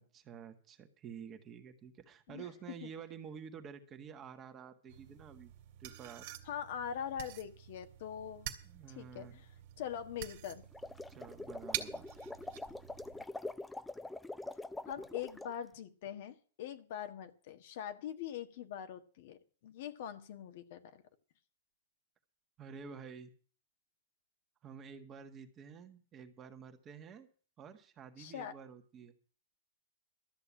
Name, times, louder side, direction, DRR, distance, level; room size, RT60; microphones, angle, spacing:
voice 1, 0.0-5.5 5.8-6.2 8.6-9.4 11.1-12.1 22.6-23.3 24.6-27.3 27.6-29.1, right 7 dB, 25° right, 6 dB, 1.7 m, -50 dB
sound 1, 4.9-13.2, right 12 dB, 55° right, 2.1 m, -47 dB
voice 2, 6.4-8.5 8.9-9.5 9.8-10.6 14.9-21.0 28.2-28.6, left 9 dB, 55° left, 7 dB, 1.6 m, -43 dB
sound 2, 10.6-15.5, left 2 dB, 5° left, 0.6 m, -44 dB
13.5 x 6.7 x 8.7 m, 0.41 s
hypercardioid pair, 140°, 0 cm